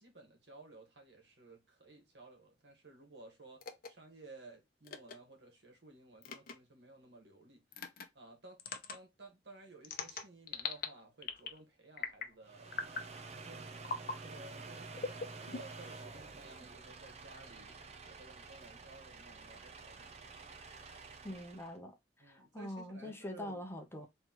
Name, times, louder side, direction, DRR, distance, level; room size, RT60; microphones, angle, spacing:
voice 1, 0.0-7.8 8.1-8.6 8.9-12.7 13.4-13.7 14.2-17.7 18.0-20.3 22.2-23.6 24.0-24.1, right 2 dB, 75° right, 1.6 m, -56 dB
sound 1, 3.6-3.9 4.8-5.1 6.2-6.5 7.7-8.0 8.6-9.0 9.8-10.9 11.2-11.6 12.0-12.3 12.7-13.1 13.8-14.2 15.0-15.9, left 5 dB, 55° left, 0.7 m, -40 dB
sound 2, 12.4-21.8, right 4 dB, 40° right, 0.6 m, -50 dB
voice 2, 21.2-21.9 22.3-24.1, left 1 dB, 15° left, 0.8 m, -44 dB
4.1 x 3.2 x 3.0 m
head